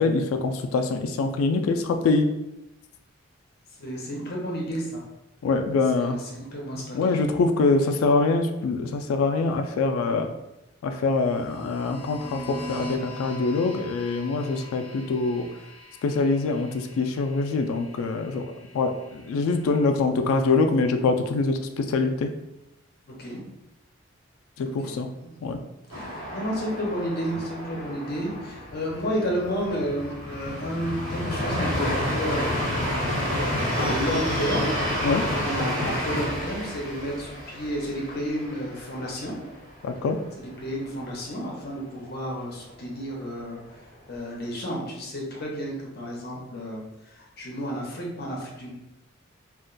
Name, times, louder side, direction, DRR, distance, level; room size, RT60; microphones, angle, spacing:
voice 1, 0.0-2.3 5.4-6.2 6.7-10.3 10.8-15.5 16.0-18.4 18.7-22.3 24.6-25.1 25.4-25.6 35.0-35.2 39.8-40.2, left 3 dB, 90° left, 6 dB, 0.3 m, -24 dB
voice 2, 3.8-5.0 6.0-7.3 23.2-23.4 24.6-25.3 25.9-39.4 40.6-48.7, equal, 50° left, -2 dB, 0.6 m, -32 dB
sound 1, 11.1-19.9, left 1 dB, ahead, 0.7 m, -42 dB
sound 2, 25.9-39.6 40.0-40.1 40.4-41.0, left 1 dB, 60° right, 1.3 m, -30 dB
2.4 x 2.1 x 3.8 m, 0.92 s
head